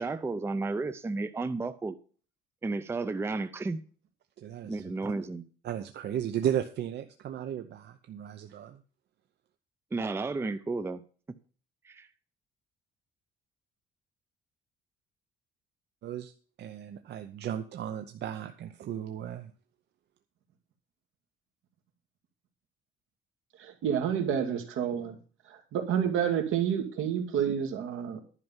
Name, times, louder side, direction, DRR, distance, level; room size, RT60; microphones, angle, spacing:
voice 1, 0.0-2.0 2.6-3.8 4.6-5.4 9.9-11.0 11.8-12.1, right 3 dB, 10° right, 10 dB, 0.5 m, -32 dB
voice 2, 4.4-4.8 5.6-8.8 16.0-16.3 16.6-19.5, right 10 dB, 55° right, 7 dB, 0.7 m, -35 dB
voice 3, 23.6-25.2 25.5-28.2, right 8 dB, 80° right, 4 dB, 2.3 m, -29 dB
11.0 x 5.5 x 7.4 m, 0.40 s
cardioid pair, 160°, 21 cm